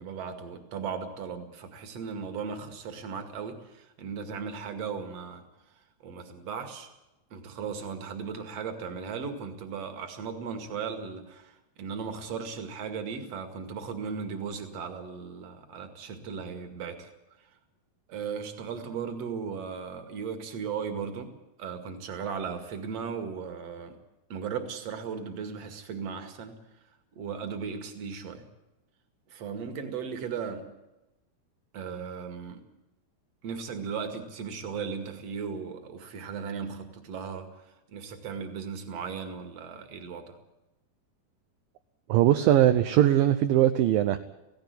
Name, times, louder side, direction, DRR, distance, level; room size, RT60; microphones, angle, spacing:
voice 1, 0.0-5.4 6.0-6.9 7.3-17.1 18.1-21.3 21.6-24.0 24.3-26.6 27.2-28.4 29.3-30.7 31.7-32.6 33.4-37.5 37.9-40.4, right 6 dB, 45° right, 7 dB, 2.8 m, -36 dB
voice 2, 42.1-44.2, right 12 dB, 75° right, 8 dB, 2.3 m, -21 dB
17.5 x 16.5 x 9.7 m, 0.97 s
omnidirectional pair, 4.5 m